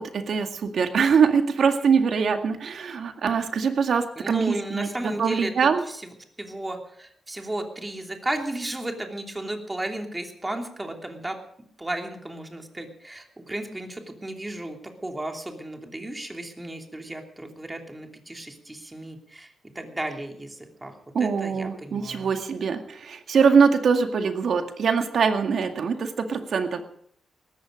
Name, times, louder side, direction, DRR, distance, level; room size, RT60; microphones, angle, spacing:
voice 1, 0.0-5.8 21.1-26.8, right 6 dB, 65° right, 6 dB, 2.1 m, -23 dB
voice 2, 4.2-6.0 6.4-11.4 11.8-20.9 21.2-22.3, right 1 dB, 15° right, 3 dB, 3.0 m, -34 dB
18.5 x 14.5 x 5.2 m, 0.65 s
cardioid pair, 90°, 0 cm